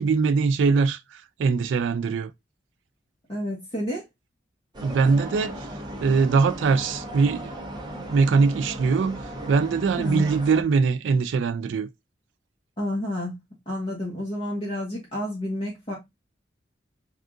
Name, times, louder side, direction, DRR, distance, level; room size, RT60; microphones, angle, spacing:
voice 1, 0.0-2.3 4.8-5.7 6.0-7.5 8.0-11.9, right 4 dB, 85° right, 0.3 m, -22 dB
voice 2, 3.3-4.0 10.0-10.2 12.8-13.3 13.7-16.0, left 1 dB, 30° left, 1.1 m, -30 dB
sound 1, 4.7-10.6, equal, 25° right, 0.7 m, -37 dB
3.6 x 2.4 x 3.6 m
head